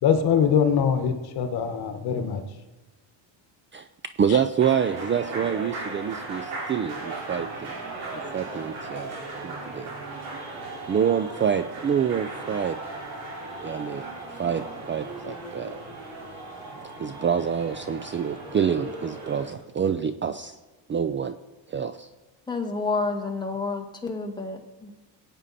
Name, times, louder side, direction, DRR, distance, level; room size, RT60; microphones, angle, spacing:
voice 1, 0.0-2.4 4.3-4.4, left 7 dB, 55° left, 7 dB, 1.5 m, -23 dB
voice 2, 4.2-7.7 8.1-9.1 9.4-9.9 10.9-12.8 13.6-15.8 17.0-20.6 20.9-21.4 21.7-22.1, right 8 dB, 25° right, 10 dB, 0.5 m, -27 dB
sound 1, 4.6-19.5, right 2 dB, 80° right, 4.5 m, -37 dB
voice 3, 22.5-24.9, left 3 dB, 10° left, 2 dB, 1.8 m, -29 dB
21.5 x 9.0 x 4.2 m, 1.1 s
cardioid pair, 125°, 45 cm